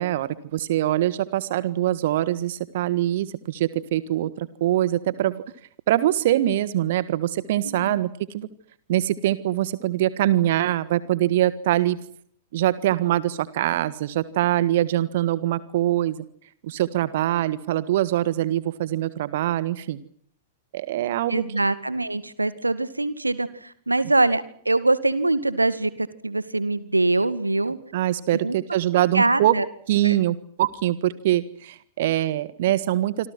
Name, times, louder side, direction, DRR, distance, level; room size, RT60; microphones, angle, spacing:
voice 1, 0.0-5.4 5.9-8.5 8.9-12.0 12.5-16.2 16.6-20.0 20.7-21.4 27.9-29.5 29.9-33.3, right 13 dB, 50° right, 16 dB, 1.5 m, -23 dB
voice 2, 7.6-8.0 21.3-27.8 28.4-28.6 29.1-29.7 30.0-30.2, right 2 dB, 85° right, 15 dB, 2.1 m, -23 dB
27.0 x 26.5 x 6.1 m, 0.62 s
figure-of-eight pair, 100°, 0 cm